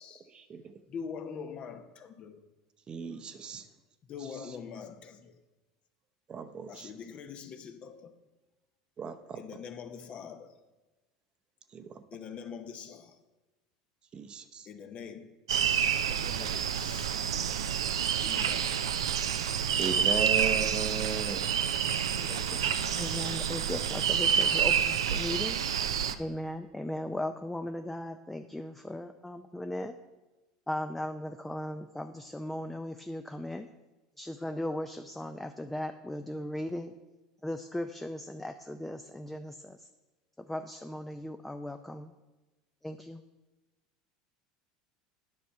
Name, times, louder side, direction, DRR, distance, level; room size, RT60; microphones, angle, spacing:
voice 1, 0.3-0.7 2.9-3.7 4.2-4.6 6.3-6.9 9.0-9.6 11.7-12.0 14.1-14.6 19.8-21.5 22.5-22.8, right 6 dB, 35° right, 9 dB, 0.7 m, -37 dB
voice 2, 0.9-2.5 4.1-5.3 6.7-8.1 9.4-10.6 12.1-13.2 14.7-15.3 16.1-17.2 18.2-18.9 19.7-20.2 22.3-23.4, left 6 dB, 45° left, 8 dB, 0.8 m, -44 dB
sound 1, 15.5-26.1, right 8 dB, 85° right, 0.4 m, -28 dB
voice 3, 23.0-25.6 26.2-29.9 30.7-33.7 34.2-36.9 37.4-39.9 40.5-42.1 42.8-43.2, left 1 dB, 10° left, 6 dB, 0.4 m, -37 dB
9.6 x 5.4 x 4.6 m, 1.1 s
hypercardioid pair, 85°, 3 cm